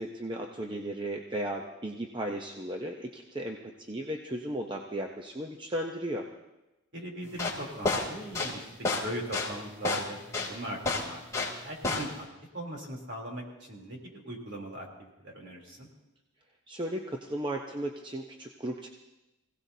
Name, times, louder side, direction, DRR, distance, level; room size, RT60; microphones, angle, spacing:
voice 1, 0.0-6.3 16.7-18.9, right 1 dB, 20° right, 2 dB, 0.7 m, -35 dB
voice 2, 6.9-10.2 10.5-12.3 12.5-15.9, right 1 dB, 55° right, -1 dB, 3.3 m, -40 dB
sound 1, 7.3-11.6 11.8-12.2, left 3 dB, 15° left, 2.8 m, -30 dB
25.0 x 17.0 x 2.8 m, 0.98 s
head